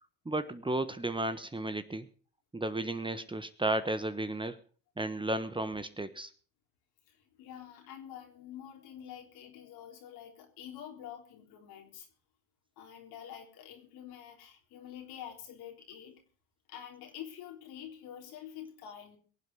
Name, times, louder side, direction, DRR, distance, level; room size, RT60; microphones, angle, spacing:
voice 1, 0.2-2.1 2.5-4.6 5.0-6.3, right 2 dB, 15° right, 11 dB, 1.3 m, -33 dB
voice 2, 7.1-12.1 12.8-16.2 16.7-19.2, left 10 dB, 70° left, 3 dB, 3.7 m, -47 dB
23.0 x 8.0 x 5.4 m, 0.41 s
hypercardioid pair, 70°, 38 cm